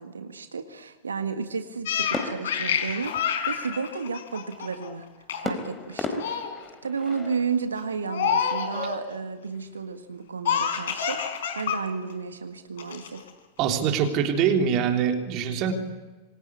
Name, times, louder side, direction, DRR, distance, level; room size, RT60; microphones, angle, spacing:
voice 1, 0.0-5.1 5.4-6.3 6.8-13.3, right 5 dB, 75° right, 7 dB, 1.7 m, -32 dB
Laughter, 1.9-4.9 5.3-5.6 5.9-6.5 7.0-7.3 8.1-9.0 10.5-11.8 12.1-12.2 12.8-13.3, left 7 dB, 60° left, 4.4 m, -28 dB
sound 1, 2.1-3.7 5.4-7.5, left 3 dB, 20° left, 4.2 m, -35 dB
voice 2, 13.6-15.7, right 7 dB, 40° right, 3 dB, 3.4 m, -24 dB
26.5 x 25.5 x 8.5 m, 1.2 s
figure-of-eight pair, 90°, 0 cm